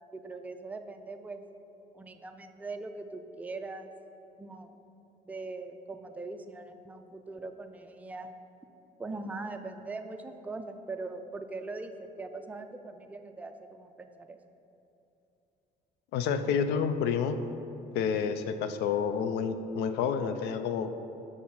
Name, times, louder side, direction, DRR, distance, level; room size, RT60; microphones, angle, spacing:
voice 1, 0.1-1.4 1.9-3.9 4.4-4.7 5.3-8.3 9.0-14.4, right 3 dB, 10° right, 6 dB, 0.3 m, -41 dB
voice 2, 16.1-17.4 17.9-20.9, left 6 dB, 85° left, 9 dB, 0.4 m, -29 dB
5.9 x 3.7 x 5.6 m, 2.9 s
cardioid pair, 110°, 17 cm